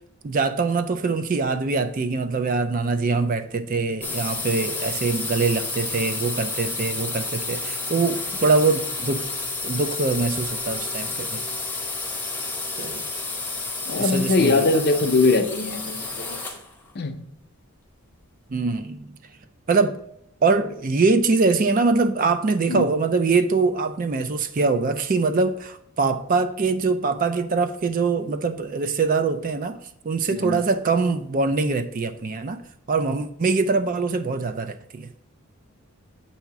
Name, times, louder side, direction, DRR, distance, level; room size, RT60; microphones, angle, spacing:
voice 1, 0.2-9.3 9.6-11.4 12.8-13.0 14.0-14.6 18.5-19.1 19.7-20.0 20.4-29.8 30.0-32.6 32.9-35.1, right 4 dB, 40° right, 0.4 m, -23 dB
sound 1, 4.0-16.7, left 3 dB, 10° left, 0.7 m, -30 dB
voice 2, 13.9-16.4 16.9-17.2 22.6-22.9 30.3-30.6, left 3 dB, 45° left, 0.6 m, -22 dB
8.1 x 2.8 x 5.8 m
head